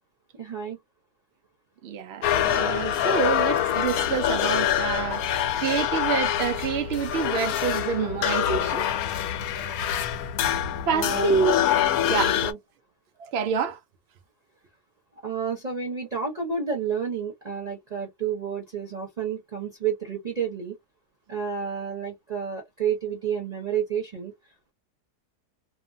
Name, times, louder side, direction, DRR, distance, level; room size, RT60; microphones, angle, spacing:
voice 1, 0.4-0.8 10.9-11.4 12.4-12.6 15.2-20.8 21.3-24.3, right 6 dB, 35° right, 0.7 m, -30 dB
voice 2, 1.8-8.9 9.5-10.0 10.4-10.5 10.9-11.6 12.0-12.4 13.2-13.8, right 6 dB, 80° right, 0.5 m, -27 dB
sound 1, 2.2-12.5, left 10 dB, 70° left, 1.0 m, -25 dB
2.9 x 2.1 x 2.5 m
omnidirectional pair, 1.7 m